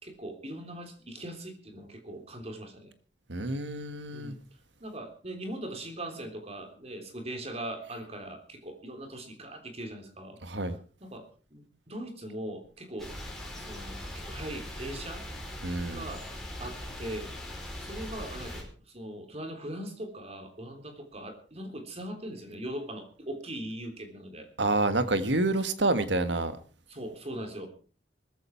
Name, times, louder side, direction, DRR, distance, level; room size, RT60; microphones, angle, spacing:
voice 1, 0.0-2.9 4.1-4.4 4.8-10.4 11.0-11.3 11.5-13.1 13.6-15.2 15.9-16.3 16.6-17.3 17.8-24.5 26.9-27.7, right 1 dB, 35° right, 5 dB, 3.4 m, -40 dB
voice 2, 3.3-4.3 10.4-10.8 15.6-16.1 24.6-26.6, right 2 dB, 80° right, 11 dB, 1.7 m, -28 dB
sound 1, 13.0-18.6, left 1 dB, ahead, 5.3 m, -40 dB
19.5 x 14.5 x 4.5 m, 0.38 s
head